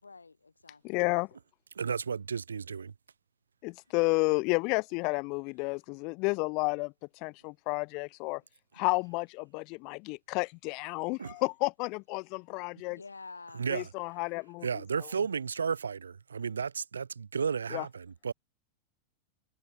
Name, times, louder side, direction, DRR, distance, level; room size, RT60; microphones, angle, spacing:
voice 1, 0.0-1.1 3.9-4.0 12.9-13.7, left 4 dB, 80° left, 7.5 m, -49 dB
voice 2, 0.8-1.3 3.6-6.9 7.2-8.4 8.7-13.0 13.7-14.7 17.7-17.8, left 29 dB, 45° left, 2.1 m, -31 dB
voice 3, 1.8-2.9 11.2-11.3 13.5-13.9 14.6-18.3, right 6 dB, 70° right, 3.3 m, -33 dB
figure-of-eight pair, 90°, 0 cm